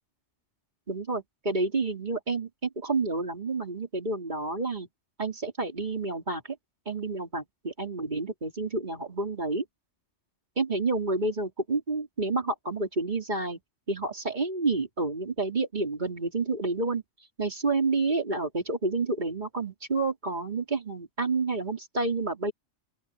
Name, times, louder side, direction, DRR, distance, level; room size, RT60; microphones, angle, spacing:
voice 1, 0.9-4.9 5.2-6.4 6.9-9.6 10.6-13.6 13.9-17.0 17.4-22.5, right 3 dB, 35° right, 3.1 m, -29 dB
open air
omnidirectional pair, 1.3 m